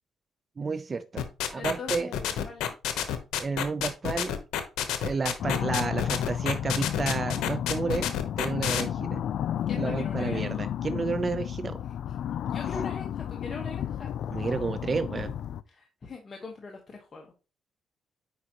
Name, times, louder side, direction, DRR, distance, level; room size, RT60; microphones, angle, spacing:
voice 1, 0.6-2.1 3.4-4.4 5.0-8.1 8.4-9.2 9.8-11.8 14.3-15.3, right 4 dB, 35° right, 0.6 m, -31 dB
sound 1, 1.2-8.8, left 10 dB, 90° left, 0.9 m, -29 dB
voice 2, 1.5-2.7 9.7-10.5 12.4-14.1 15.7-17.3, left 3 dB, 35° left, 1.3 m, -41 dB
sound 2, 5.4-15.6, left 10 dB, 70° left, 0.4 m, -32 dB
8.3 x 5.1 x 3.0 m
cardioid pair, 90°, 0 cm